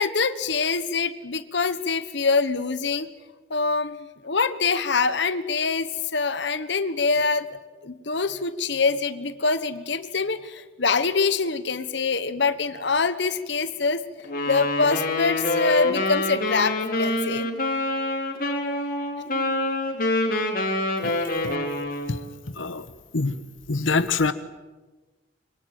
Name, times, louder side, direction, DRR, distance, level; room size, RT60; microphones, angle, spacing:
voice 1, 0.0-3.1 3.5-7.5 7.8-14.0 14.5-17.5, left 4 dB, 65° left, 12 dB, 1.3 m, -25 dB
Wind instrument woodwind instrument, 14.2-22.2, left 2 dB, 50° left, 4.3 m, -26 dB
voice 2, 22.6-22.9 23.1-23.4 23.7-24.3, left 4 dB, 80° left, 12 dB, 1.2 m, -24 dB
25.5 x 23.5 x 8.9 m, 1.2 s
head